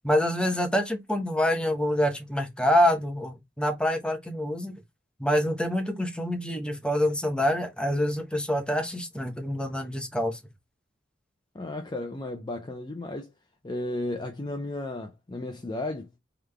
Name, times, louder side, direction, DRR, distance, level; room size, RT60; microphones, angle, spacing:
voice 1, 0.0-4.7 5.2-10.4, left 1 dB, 5° left, 1.0 m, -26 dB
voice 2, 11.5-13.3 13.6-16.2, left 2 dB, 25° left, 0.6 m, -34 dB
3.8 x 3.4 x 3.4 m
head